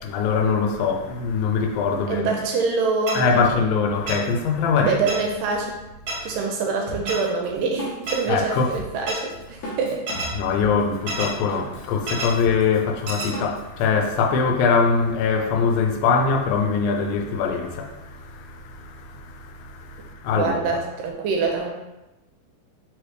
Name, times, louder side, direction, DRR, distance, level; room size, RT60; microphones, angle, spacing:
voice 1, 0.0-2.3 3.2-5.0 6.2-6.4 8.3-8.7 10.3-20.8, left 5 dB, 90° left, 2.4 m, -23 dB
voice 2, 2.1-3.5 4.8-5.8 6.2-10.0 20.3-21.7, right 4 dB, 85° right, 2.2 m, -25 dB
sound 1, 3.1-3.2 4.1-4.2 5.1-5.2 6.1-6.2 7.1-7.2 8.1-8.2 9.1-9.2 10.1-10.3 11.1-11.3 12.1-12.3 13.1-13.3, right 2 dB, 65° right, 1.9 m, -28 dB
Drum kit, 6.9-14.1, equal, 65° left, 1.7 m, -38 dB
5.3 x 3.2 x 3.1 m
omnidirectional pair, 4.0 m